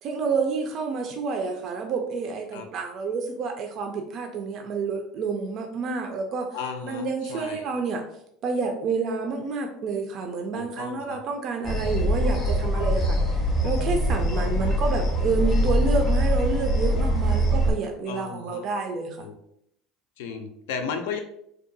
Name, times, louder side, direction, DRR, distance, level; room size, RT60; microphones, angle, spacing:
voice 1, 0.0-6.5 6.8-8.0 8.4-19.3, right 4 dB, 50° right, 3 dB, 0.3 m, -29 dB
voice 2, 6.5-7.7 10.5-11.2 14.4-14.7 18.1-18.7 19.2-19.3 20.2-21.2, left 6 dB, 85° left, 5 dB, 0.4 m, -35 dB
sound 1, 11.6-17.7, equal, 35° left, 0.5 m, -23 dB
2.6 x 2.2 x 2.6 m, 0.74 s
supercardioid pair, 120°, 0 cm